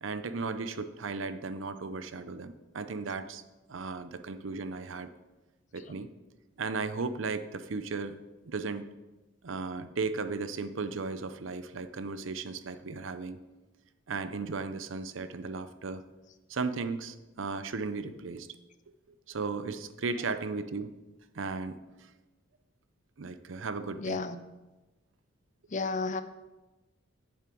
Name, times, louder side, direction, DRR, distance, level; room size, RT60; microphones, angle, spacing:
voice 1, 0.0-3.4 3.7-5.1 5.7-6.1 6.6-8.2 8.4-8.9 9.4-13.4 14.1-16.0 16.5-18.5 19.1-20.9 21.3-22.1 23.2-24.2, right 4 dB, 80° right, 11 dB, 0.6 m, -35 dB
voice 2, 24.0-24.4 25.7-26.2, left 3 dB, 40° left, 11 dB, 0.6 m, -32 dB
9.7 x 7.3 x 4.6 m, 1.1 s
head